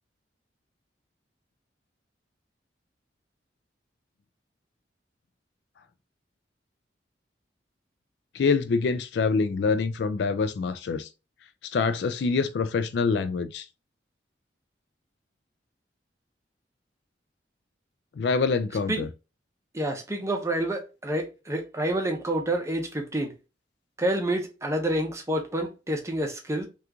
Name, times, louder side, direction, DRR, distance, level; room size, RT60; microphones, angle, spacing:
voice 1, 8.3-11.1 11.6-13.7 18.2-19.1, left 4 dB, 65° left, 0.3 m, -25 dB
voice 2, 19.7-23.3 24.0-26.7, right 1 dB, 15° right, 0.6 m, -28 dB
2.9 x 2.4 x 3.5 m
head